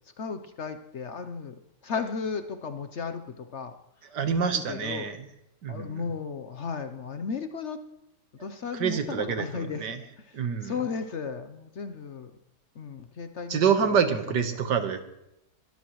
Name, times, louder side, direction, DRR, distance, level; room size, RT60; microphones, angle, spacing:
voice 1, 0.2-1.6 1.8-3.7 4.4-5.1 5.7-7.8 8.3-10.4 10.6-12.3 12.8-14.3, left 5 dB, 55° left, 9 dB, 0.9 m, -35 dB
voice 2, 4.1-5.3 5.6-6.0 8.4-8.5 8.8-10.0 10.3-10.7 13.5-15.0, right 7 dB, 85° right, 8 dB, 1.9 m, -26 dB
22.0 x 12.5 x 3.1 m, 0.83 s
omnidirectional pair, 1.8 m